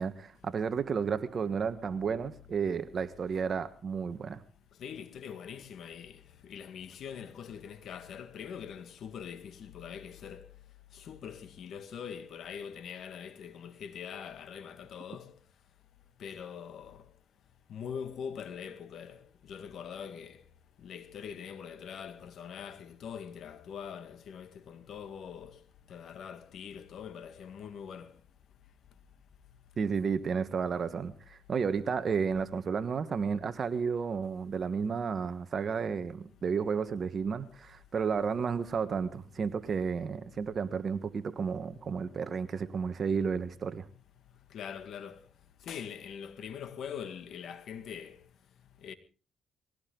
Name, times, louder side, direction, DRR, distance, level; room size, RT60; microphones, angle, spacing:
voice 1, 0.0-4.4 29.8-43.9, right 6 dB, 45° right, 1.3 m, -32 dB
voice 2, 4.8-10.4 10.9-15.3 16.2-17.0 17.7-20.4 20.8-25.6 25.9-28.1 44.5-45.2 45.7-48.2 48.8-48.9, left 7 dB, 70° left, 2.0 m, -43 dB
21.0 x 17.0 x 3.9 m
cardioid pair, 90°, 0 cm